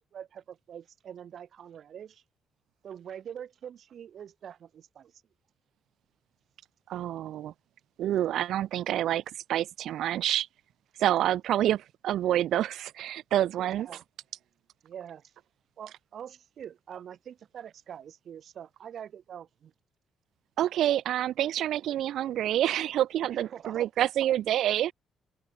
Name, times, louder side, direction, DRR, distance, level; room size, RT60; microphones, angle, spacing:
voice 1, 0.1-2.2 2.8-5.1 13.6-14.0 14.8-15.2 15.8-19.7 23.3-24.1, right 9 dB, 45° right, 2.8 m, -44 dB
voice 2, 6.9-7.5 8.0-9.2 9.5-10.5 11.0-13.9 20.6-24.9, right 12 dB, 65° right, 0.6 m, -27 dB
cardioid pair, 165°, 0 cm